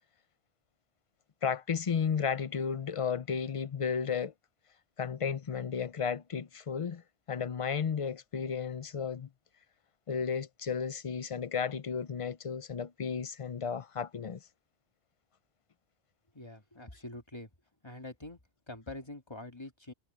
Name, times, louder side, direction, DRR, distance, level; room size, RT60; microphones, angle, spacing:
voice 1, 1.4-4.3 5.0-7.0 7.3-9.3 10.1-14.4, left 6 dB, 40° left, 0.5 m, -33 dB
voice 2, 16.3-17.5 17.8-18.4 18.7-19.9, left 2 dB, 25° left, 1.9 m, -45 dB
omnidirectional pair, 1.2 m